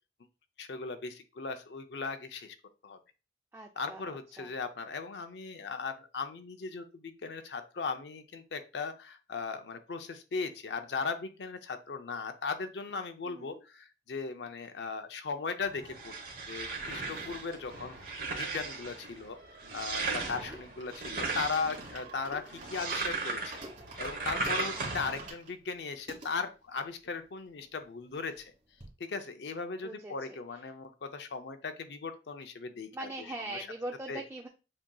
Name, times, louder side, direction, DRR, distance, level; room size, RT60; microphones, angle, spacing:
voice 1, 0.6-2.5 2.8-3.0 3.8-16.1 16.5-19.4 19.7-23.6 24.0-28.5 29.0-33.7 34.1-34.2, left 4 dB, 80° left, 7 dB, 0.5 m, -38 dB
voice 2, 3.5-4.1 4.4-4.5 13.3-13.6 20.2-20.6 24.7-25.1 29.8-30.4 32.9-34.5, right 2 dB, 15° right, 2 dB, 0.3 m, -42 dB
sound 1, 15.6-25.3, right 3 dB, 55° right, 1.0 m, -37 dB
sound 2, 16.3-19.1 19.4-19.5 19.8-26.3 26.9-27.0 27.1-27.2 27.5-28.5 28.8-28.9, right 2 dB, 35° right, 2.1 m, -50 dB
7.4 x 2.8 x 2.2 m, 0.31 s
head